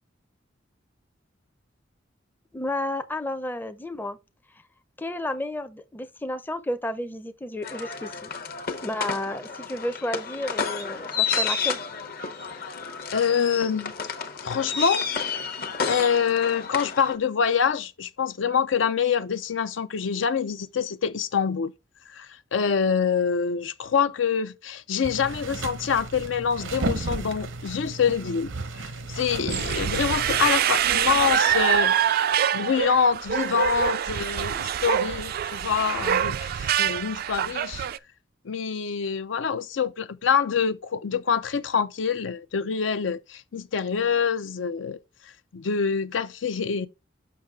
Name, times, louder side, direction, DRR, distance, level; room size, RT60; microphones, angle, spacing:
voice 1, 2.5-4.2 5.0-8.3 8.8-11.8, left 1 dB, 10° left, 0.5 m, -32 dB
sound 1, 7.6-17.2, left 5 dB, 50° left, 0.9 m, -31 dB
voice 2, 13.1-13.9 14.4-15.0 15.9-21.7 22.1-28.5 29.1-31.9 32.5-37.9 38.4-45.0 45.5-46.9, left 6 dB, 80° left, 0.5 m, -25 dB
sound 2, 25.0-30.5, right 3 dB, 85° right, 0.8 m, -34 dB
sound 3, 29.5-38.0, right 9 dB, 50° right, 0.3 m, -25 dB
6.7 x 5.7 x 3.6 m
head